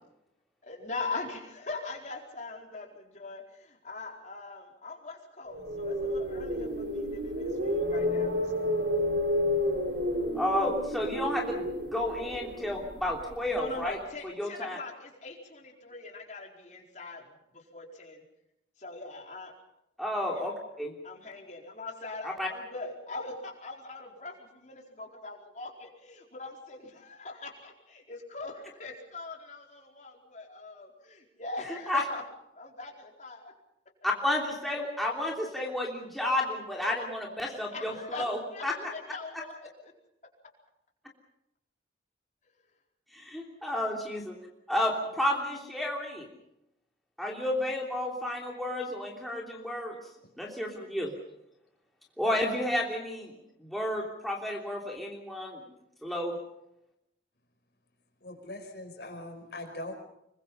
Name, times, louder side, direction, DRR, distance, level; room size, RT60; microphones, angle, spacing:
voice 1, 0.6-8.7 13.5-17.3 17.5-18.2 18.8-19.5 20.3-20.5 21.0-32.2 32.6-33.5 37.4-39.9, left 3 dB, 40° left, 1 dB, 4.6 m, -41 dB
sound 1, 5.5-13.6, left 1 dB, 75° right, 4.4 m, -31 dB
voice 2, 10.3-14.0 14.2-14.8 20.0-20.9 22.2-22.5 31.9-32.0 34.0-38.8 39.3-39.4 43.1-44.4 44.7-46.3 47.2-50.0 50.4-51.1 52.2-53.3 53.6-55.6 56.0-56.4, left 1 dB, ahead, -2 dB, 3.1 m, -31 dB
voice 3, 58.2-59.9, left 1 dB, 60° left, 4 dB, 5.3 m, -41 dB
26.0 x 23.5 x 5.6 m, 0.83 s
head